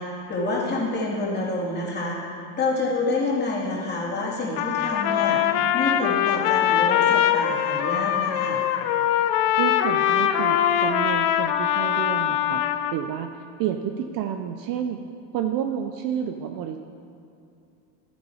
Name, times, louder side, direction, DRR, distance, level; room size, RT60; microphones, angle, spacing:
voice 1, 0.0-8.6, left 2 dB, 20° left, -5 dB, 2.7 m, -28 dB
Trumpet, 4.6-13.0, left 10 dB, 60° left, 0.8 m, -22 dB
voice 2, 9.6-12.6 12.9-15.0 15.3-16.8, right 9 dB, 45° right, 7 dB, 0.6 m, -30 dB
13.0 x 7.9 x 4.9 m, 2.6 s
supercardioid pair, 135°, 50 cm